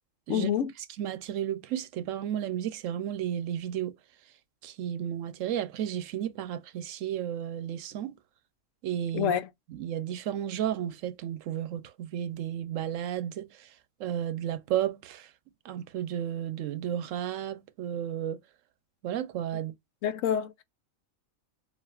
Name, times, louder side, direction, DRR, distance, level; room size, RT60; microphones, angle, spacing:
voice 1, 0.3-0.7 9.1-9.5 20.0-20.6, left 9 dB, 75° left, 1.0 m, -27 dB
voice 2, 1.0-3.9 4.6-8.1 8.8-9.3 9.7-13.7 14.0-15.3 15.6-18.4 19.0-19.7, right 10 dB, 75° right, 1.0 m, -33 dB
7.2 x 2.5 x 2.4 m
omnidirectional pair, 1.4 m